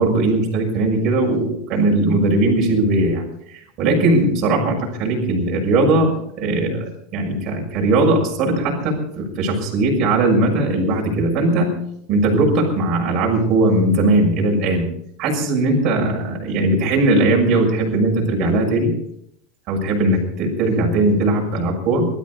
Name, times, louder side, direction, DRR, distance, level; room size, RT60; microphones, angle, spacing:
voice 1, 0.0-3.3 3.8-6.8 7.1-11.7 12.1-14.8 15.2-18.9 19.7-22.1, right 2 dB, 30° right, -1 dB, 6.2 m, -19 dB
25.0 x 13.5 x 4.2 m, 0.73 s
supercardioid pair, 180°, 0 cm